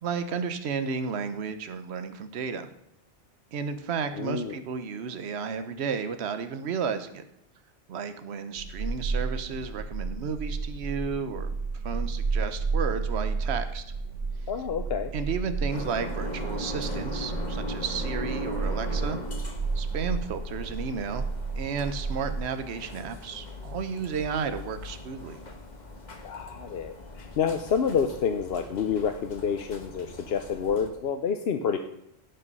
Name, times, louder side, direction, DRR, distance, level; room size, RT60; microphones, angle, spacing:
voice 1, 0.0-2.7 3.5-7.2 7.9-11.6 11.8-13.8 15.1-19.2 19.7-21.2 21.5-25.5, right 6 dB, 70° right, 9 dB, 1.1 m, -33 dB
voice 2, 4.1-4.6 14.5-15.1 26.2-31.8, left 6 dB, 65° left, 6 dB, 0.9 m, -28 dB
sound 1, 8.6-22.4, right 4 dB, 90° right, 1.8 m, -32 dB
sound 2, 15.7-30.9, left 2 dB, 40° left, 1.3 m, -40 dB
16.5 x 5.6 x 5.4 m, 0.79 s
omnidirectional pair, 1.2 m